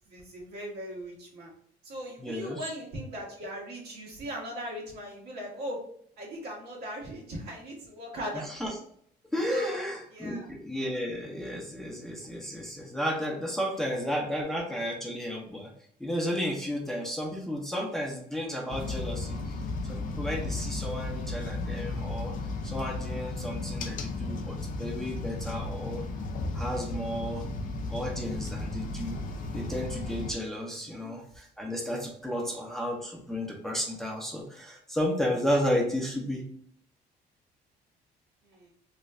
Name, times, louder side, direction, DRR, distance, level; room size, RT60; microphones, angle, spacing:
voice 1, 0.1-1.5 1.8-5.8 6.2-8.5 9.5-10.5 21.0-21.4 30.7-31.1 32.3-32.6 38.4-38.7, equal, 75° right, -2 dB, 1.3 m, -39 dB
voice 2, 2.2-2.6 8.5-8.7 9.3-15.7 16.0-19.4 19.8-22.3 22.6-26.0 26.5-27.4 27.9-29.2 29.5-36.4, equal, ahead, -1 dB, 0.6 m, -33 dB
sound 1, 18.7-30.3, left 2 dB, 50° left, 0.5 m, -34 dB
3.2 x 2.2 x 3.7 m, 0.64 s
cardioid pair, 110°, 17 cm